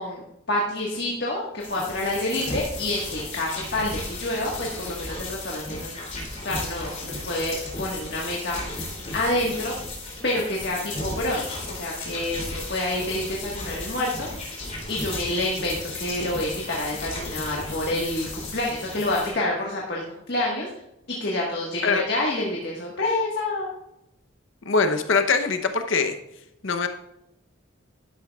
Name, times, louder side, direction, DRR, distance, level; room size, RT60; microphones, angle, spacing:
voice 1, 0.0-9.7 10.2-14.5 14.9-20.7 21.1-23.7, left 1 dB, 50° left, -3 dB, 1.5 m, -28 dB
sound 1, 1.6-19.3, left 2 dB, 35° left, 3.2 m, -35 dB
voice 2, 24.7-26.2 26.6-26.9, left 4 dB, 65° left, 7 dB, 0.8 m, -22 dB
12.0 x 11.0 x 2.4 m, 0.83 s
head